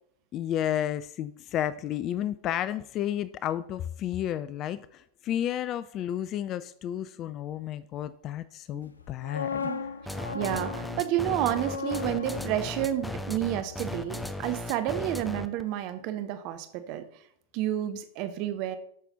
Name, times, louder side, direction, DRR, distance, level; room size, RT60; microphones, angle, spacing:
voice 1, 0.3-9.7, left 11 dB, 35° left, 16 dB, 0.3 m, -32 dB
sound 1, 9.0-14.9 15.2-15.5, left 5 dB, 75° left, 0.6 m, -38 dB
sound 2, 10.1-15.6, left 1 dB, 5° left, 0.7 m, -36 dB
voice 2, 10.3-17.1 17.5-18.8, right 12 dB, 45° right, 11 dB, 0.7 m, -30 dB
13.0 x 5.9 x 4.0 m, 0.69 s
figure-of-eight pair, 90°, 0 cm